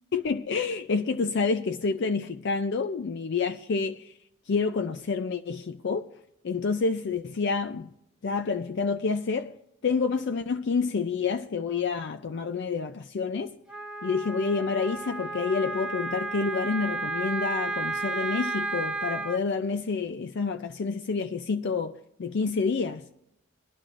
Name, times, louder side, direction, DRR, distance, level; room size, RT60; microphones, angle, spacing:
voice 1, 0.1-4.1 4.5-6.1 6.4-7.9 8.2-9.6 9.8-13.6 14.0-23.1, left 4 dB, 55° left, 0.4 m, -28 dB
Wind instrument woodwind instrument, 13.7-19.4, right 3 dB, 5° right, 0.6 m, -32 dB
21.0 x 11.5 x 2.5 m
head